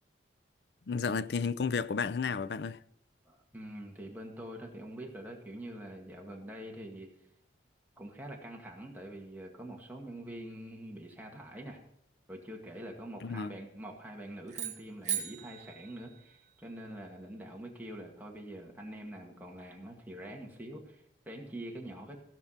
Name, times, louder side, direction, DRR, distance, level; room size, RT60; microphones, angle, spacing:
voice 1, 0.9-2.8 13.2-13.5, left 5 dB, 60° left, 0.4 m, -32 dB
voice 2, 3.3-7.1 8.0-11.8 12.3-22.2, right 1 dB, 10° right, 2.0 m, -45 dB
sound 1, 14.5-16.8, right 10 dB, 40° right, 2.1 m, -39 dB
16.0 x 6.0 x 5.8 m
head